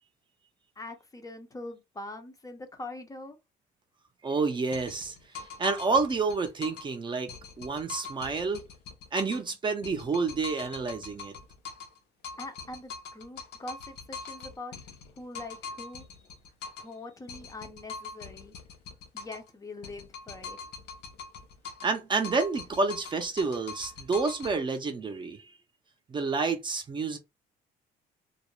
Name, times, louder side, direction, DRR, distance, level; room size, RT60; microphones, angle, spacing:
voice 1, 0.8-3.4 12.4-14.7 15.1-16.1 16.8-18.6 19.1-20.7, left 2 dB, 20° left, 0.5 m, -43 dB
voice 2, 4.2-5.2 5.6-8.6 9.1-11.4 21.8-25.5 26.1-27.2, right 4 dB, 30° right, 0.5 m, -29 dB
sound 1, 4.7-6.9 7.3-9.5 9.8-12.0 12.2-16.9 17.3-19.5 19.8-22.0 22.2-24.6, left 5 dB, 80° left, 0.7 m, -43 dB
2.3 x 2.0 x 3.0 m
cardioid pair, 110°, 17 cm